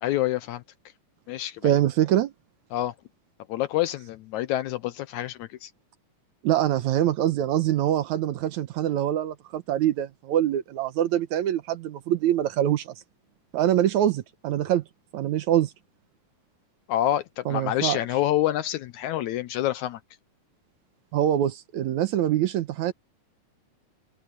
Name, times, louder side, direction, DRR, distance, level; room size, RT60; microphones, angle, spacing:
voice 1, 0.0-0.6 1.3-1.8 2.7-2.9 3.5-5.7 16.9-20.0, left 13 dB, 75° left, 1.8 m, -27 dB
voice 2, 1.6-2.3 6.4-12.9 13.5-14.8 15.1-15.7 17.5-18.0 21.1-22.9, right 11 dB, 70° right, 2.0 m, -24 dB
omnidirectional pair, 3.8 m